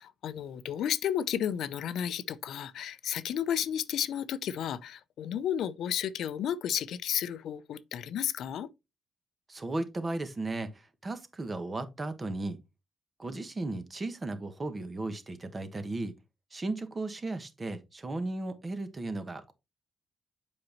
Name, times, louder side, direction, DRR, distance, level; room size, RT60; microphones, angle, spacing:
voice 1, 0.0-8.7, left 9 dB, 80° left, 0.5 m, -32 dB
voice 2, 9.5-12.6 13.2-16.1 16.5-19.5, right 2 dB, 25° right, 1.2 m, -35 dB
7.8 x 5.2 x 3.0 m
cardioid pair, 110°, 0 cm